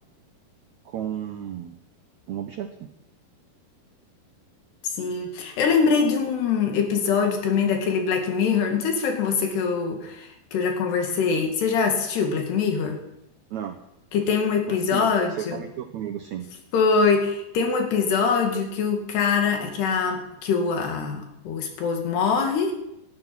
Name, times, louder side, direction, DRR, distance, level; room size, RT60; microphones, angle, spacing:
voice 1, 0.8-1.8 2.3-2.9 13.5-13.8 14.7-16.5, right 10 dB, 80° right, 6 dB, 1.6 m, -33 dB
voice 2, 4.8-13.0 14.1-15.6 16.7-22.7, left 5 dB, 90° left, 3 dB, 4.4 m, -23 dB
18.5 x 13.0 x 6.1 m, 0.84 s
omnidirectional pair, 4.6 m